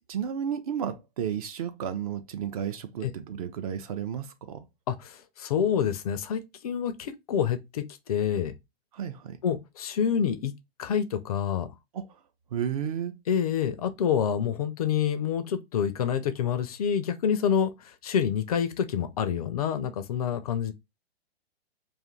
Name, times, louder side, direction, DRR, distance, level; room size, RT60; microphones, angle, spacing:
voice 1, 0.1-4.7 8.9-9.4 11.9-12.1 12.5-13.2, right 8 dB, 35° right, 0.4 m, -32 dB
voice 2, 4.9-8.5 9.4-10.5 10.8-11.7 13.3-20.7, left 8 dB, 40° left, 0.4 m, -27 dB
2.6 x 2.4 x 3.8 m
figure-of-eight pair, 115°, 32 cm